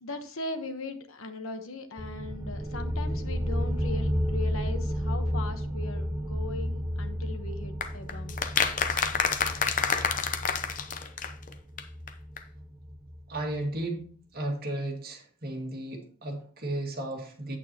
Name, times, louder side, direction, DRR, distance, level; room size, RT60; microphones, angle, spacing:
voice 1, 0.0-8.4, left 2 dB, 75° left, 8 dB, 1.1 m, -39 dB
sound 1, 2.0-13.4, equal, 15° right, 0.6 m, -32 dB
sound 2, 7.8-11.5 11.8-11.9 12.1-12.2 12.4-12.5, left 6 dB, 40° left, 0.7 m, -28 dB
voice 2, 13.3-14.1 14.3-17.6, right 1 dB, 50° right, 1 dB, 2.2 m, -34 dB
8.8 x 8.5 x 2.9 m, 0.43 s
head